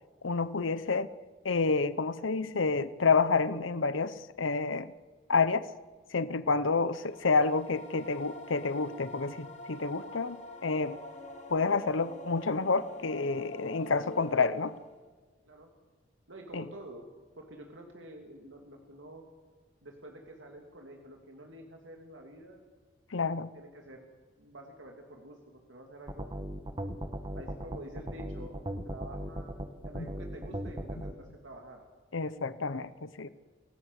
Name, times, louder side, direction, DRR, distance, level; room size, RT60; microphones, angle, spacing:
voice 1, 0.2-1.1 1.4-4.9 5.3-5.7 6.1-10.4 10.6-11.0 11.5-14.7 16.5-16.7 23.1-23.5 29.9-30.1 32.1-33.3, left 4 dB, 85° left, 16 dB, 0.8 m, -29 dB
sound 1, 6.9-15.1, left 1 dB, 35° left, 3.3 m, -46 dB
voice 2, 16.3-17.1 17.3-19.2 19.8-22.6 23.1-24.1 24.4-26.4 27.3-28.6 28.8-31.8, right 1 dB, 80° right, 2 dB, 2.8 m, -49 dB
sound 2, 26.1-31.1, right 1 dB, 25° right, 1.4 m, -37 dB
27.5 x 17.0 x 8.2 m, 1.4 s
head